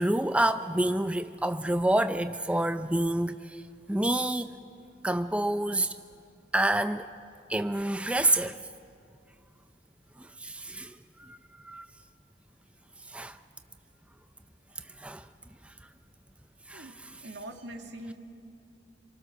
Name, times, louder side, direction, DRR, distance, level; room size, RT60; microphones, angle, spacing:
voice 1, 0.0-3.4 3.9-4.5 5.0-5.9 6.5-7.1 7.5-8.6 10.2-10.9 11.3-11.4 11.6-11.9 13.1-13.4 15.0-15.2 16.7-17.1, right 1 dB, 5° right, 0.5 m, -27 dB
voice 2, 16.7-18.1, right 1 dB, 85° right, 2.2 m, -43 dB
27.0 x 24.0 x 6.7 m
head